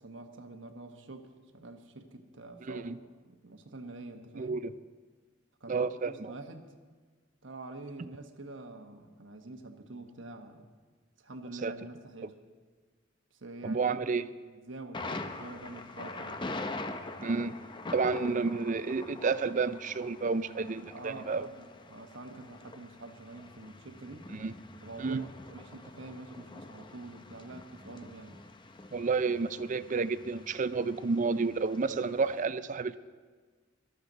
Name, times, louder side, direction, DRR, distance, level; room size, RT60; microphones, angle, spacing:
voice 1, 0.0-3.0 3.2-4.6 5.6-6.7 7.4-10.7 11.2-12.3 13.3-16.5 17.2-18.6 20.9-24.3 24.8-28.4, right 2 dB, 65° right, 5 dB, 1.2 m, -46 dB
voice 2, 2.6-3.0 4.4-4.7 5.7-6.3 11.6-11.7 13.6-14.3 17.2-17.6 17.9-21.5 24.3-24.5 25.0-25.2 28.9-32.9, right 4 dB, 40° right, 13 dB, 0.4 m, -30 dB
Thunder, 14.9-32.4, left 2 dB, 25° left, 0.6 m, -44 dB
18.5 x 13.0 x 4.0 m, 1.4 s
head